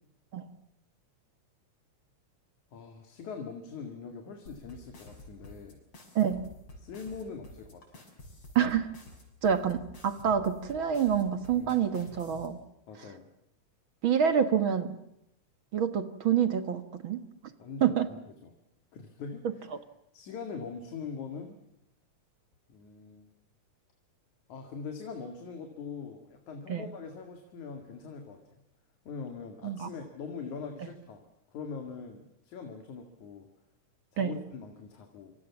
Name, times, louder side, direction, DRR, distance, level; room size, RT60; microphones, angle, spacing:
voice 1, 2.7-5.8 6.8-8.0 11.5-11.7 12.9-13.3 17.6-18.0 18.4-18.5 18.9-19.6 20.1-21.6 22.7-23.3 24.5-28.6 29.1-31.2 31.5-33.5 34.1-35.3, left 5 dB, 80° left, 4 dB, 3.6 m, -42 dB
sound 1, 4.5-12.5, left 1 dB, 50° left, 7.3 m, -50 dB
voice 2, 6.2-6.5 8.6-8.9 9.4-12.6 14.0-14.9 15.7-17.2 17.8-18.1 26.7-26.9 29.6-29.9 34.2-34.4, right 8 dB, 50° right, 10 dB, 1.9 m, -27 dB
27.5 x 26.0 x 7.2 m, 0.80 s
omnidirectional pair, 3.3 m